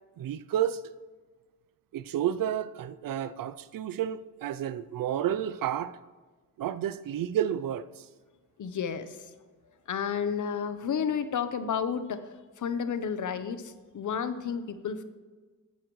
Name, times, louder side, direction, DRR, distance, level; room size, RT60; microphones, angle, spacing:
voice 1, 0.2-0.8 1.9-6.0 6.6-8.0, right 10 dB, 80° right, 0.5 m, -31 dB
voice 2, 8.6-9.3 9.9-15.0, left 7 dB, 60° left, 0.9 m, -32 dB
15.5 x 11.5 x 3.1 m
wide cardioid pair, 140°, 34 cm